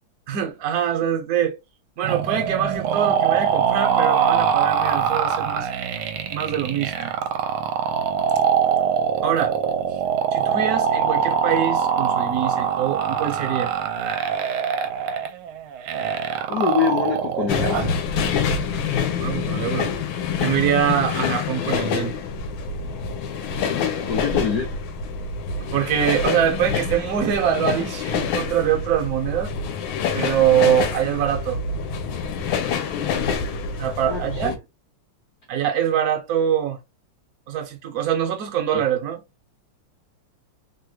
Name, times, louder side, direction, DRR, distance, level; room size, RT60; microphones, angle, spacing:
voice 1, 0.3-1.6 2.0-5.7 6.3-7.1 9.2-9.6 10.3-13.7 19.2-19.9 20.4-22.1 25.7-29.5 30.1-31.6 33.8-34.5 35.5-36.8 37.5-39.2, right 9 dB, 65° right, 1.0 m, -23 dB
sound 1, 2.0-18.0, right 8 dB, 80° right, 1.4 m, -23 dB
voice 2, 16.5-17.9 24.1-24.7 34.1-34.5 38.7-38.8, left 6 dB, 55° left, 1.1 m, -25 dB
sound 2, 17.5-34.6, left 6 dB, 75° left, 1.4 m, -26 dB
3.4 x 3.0 x 2.2 m
omnidirectional pair, 2.4 m